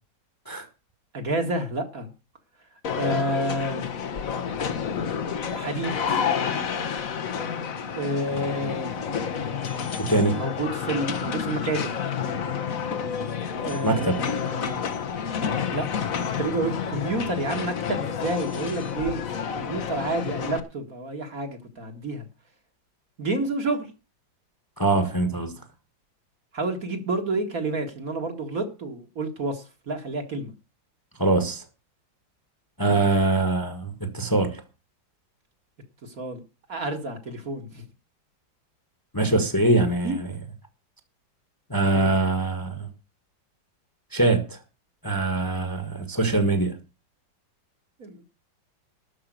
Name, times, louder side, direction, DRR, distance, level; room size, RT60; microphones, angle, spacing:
voice 1, 1.1-2.1 3.0-3.9 5.5-6.2 8.0-9.1 10.3-11.9 13.6-14.8 15.7-15.9 16.4-19.3 19.5-22.3 23.2-23.9 26.5-30.5 32.9-33.0 36.0-36.4 36.7-37.8 40.0-40.1 41.9-42.1 48.0-48.2, right 2 dB, 50° right, 2.3 m, -29 dB
sound 1, 2.8-20.6, left 7 dB, 50° left, 1.4 m, -29 dB
voice 2, 10.0-10.4 13.8-14.1 24.8-25.5 31.2-31.6 32.8-34.6 39.1-40.3 41.7-42.9 44.1-44.6 45.0-46.7, right 2 dB, 10° left, 1.6 m, -23 dB
12.5 x 5.6 x 9.3 m
omnidirectional pair, 2.0 m